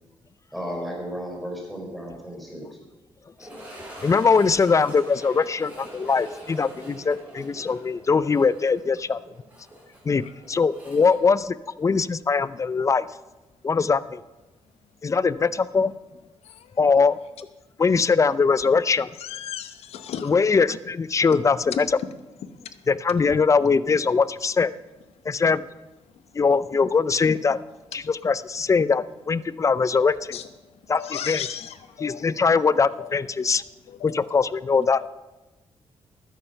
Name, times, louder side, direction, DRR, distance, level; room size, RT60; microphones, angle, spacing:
voice 1, 0.5-2.6, equal, ahead, -1 dB, 4.4 m, -34 dB
sound 1, 3.4-12.3 12.6-12.7 13.3-13.4 16.0-16.1, right 1 dB, 15° right, 5.0 m, -43 dB
voice 2, 4.0-9.2 10.1-13.1 13.6-14.2 15.0-15.9 16.8-17.2 17.8-19.1 20.2-21.9 22.9-24.7 25.3-25.6 26.3-27.6 27.9-30.4 30.9-31.5 32.0-33.6 34.0-35.1, left 5 dB, 30° left, 18 dB, 0.5 m, -21 dB
voice 3, 19.2-20.3 21.7-21.8 30.0-30.4 31.0-32.3 33.0-33.3 33.9-34.3 35.0-35.1, left 10 dB, 85° left, 10 dB, 0.9 m, -35 dB
13.0 x 10.0 x 5.7 m, 1.1 s
cardioid pair, 90°, 10 cm